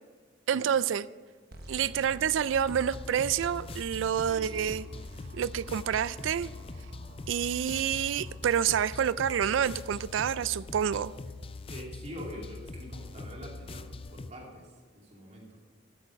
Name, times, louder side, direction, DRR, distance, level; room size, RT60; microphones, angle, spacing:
voice 1, 0.5-1.1 1.7-4.8 5.3-6.5 7.3-11.1, right 8 dB, 80° right, 18 dB, 0.3 m, -28 dB
sound 1, 1.5-8.4, equal, 55° right, 1.2 m, -49 dB
sound 2, 2.5-14.3, left 3 dB, 30° left, 0.4 m, -43 dB
voice 2, 4.3-4.7 11.7-15.6, equal, 35° right, -2 dB, 2.7 m, -45 dB
12.0 x 8.6 x 5.1 m, 1.5 s
head